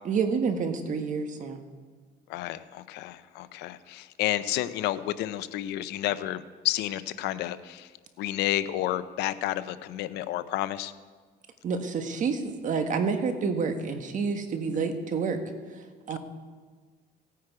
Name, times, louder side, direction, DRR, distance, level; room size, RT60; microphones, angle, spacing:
voice 1, 0.0-1.6 11.6-15.4 15.7-16.2, right 5 dB, 50° right, 7 dB, 1.4 m, -29 dB
voice 2, 2.3-7.9 8.2-10.9 14.8-14.9, left 14 dB, 85° left, 14 dB, 0.6 m, -31 dB
16.5 x 9.4 x 4.8 m, 1.5 s
cardioid pair, 110°, 17 cm